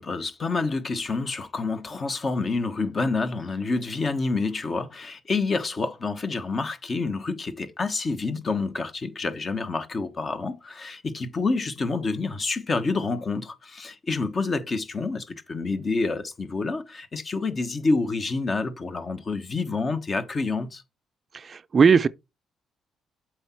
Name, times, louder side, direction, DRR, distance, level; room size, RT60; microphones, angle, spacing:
voice 1, 0.0-20.8, left 3 dB, 40° left, 1.2 m, -28 dB
voice 2, 21.3-22.1, right 5 dB, 40° right, 0.4 m, -18 dB
7.8 x 4.6 x 4.4 m
cardioid pair, 90°, 0 cm